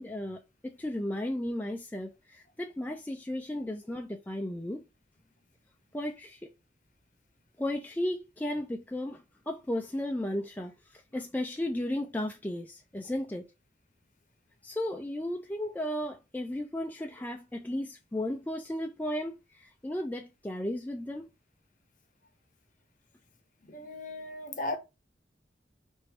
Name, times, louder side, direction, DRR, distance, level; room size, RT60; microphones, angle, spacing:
voice 1, 0.0-4.8 5.9-6.4 7.6-13.5 14.6-21.3, left 1 dB, 10° left, 0.4 m, -34 dB
voice 2, 23.7-24.8, left 2 dB, 45° left, 0.8 m, -36 dB
4.4 x 2.6 x 3.3 m
head